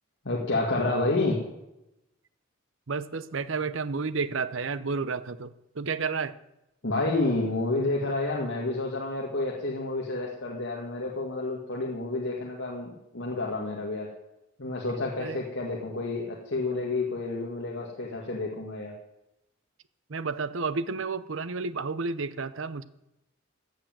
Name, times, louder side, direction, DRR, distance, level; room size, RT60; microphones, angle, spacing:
voice 1, 0.2-1.4 6.8-14.1 14.6-18.9, left 2 dB, 65° left, -2 dB, 2.1 m, -29 dB
voice 2, 2.9-6.3 15.2-15.4 20.1-22.8, right 4 dB, 70° right, 14 dB, 0.7 m, -31 dB
15.5 x 7.7 x 7.4 m, 0.89 s
head